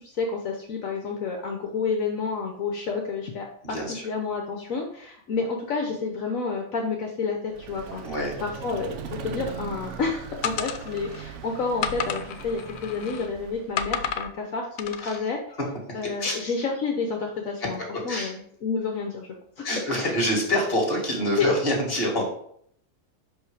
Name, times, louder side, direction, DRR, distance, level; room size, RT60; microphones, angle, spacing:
voice 1, 0.0-8.0 8.4-15.4 15.9-19.7 20.0-20.1 21.4-21.5, left 4 dB, 65° left, 1 dB, 1.3 m, -30 dB
voice 2, 3.6-4.1 8.0-8.3 15.0-15.2 16.2-16.5 17.6-17.7 18.1-18.3 19.6-22.3, equal, 40° left, -1 dB, 2.3 m, -26 dB
Vehicle, 7.5-13.9, right 6 dB, 60° right, 0.9 m, -39 dB
sound 1, 10.4-11.2 11.8-13.3 13.8-14.3 14.8-15.2, left 8 dB, 80° left, 1.1 m, -31 dB
5.8 x 5.3 x 4.8 m, 0.67 s
omnidirectional pair, 1.6 m